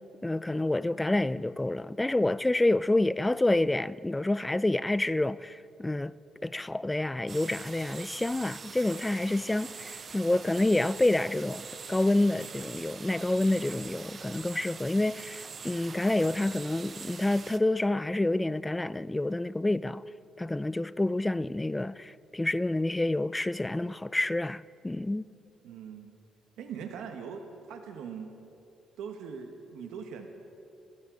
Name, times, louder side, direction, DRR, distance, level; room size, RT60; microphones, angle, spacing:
voice 1, 0.2-6.1 6.4-20.0 20.4-25.3, left 2 dB, 15° left, 0.4 m, -28 dB
sound 1, 7.3-17.6, right 5 dB, 45° right, 0.6 m, -44 dB
voice 2, 25.6-26.1 26.6-27.4 27.7-28.3 29.0-30.3, right 7 dB, 85° right, 1.3 m, -41 dB
26.5 x 14.0 x 3.9 m
cardioid pair, 90°, 0 cm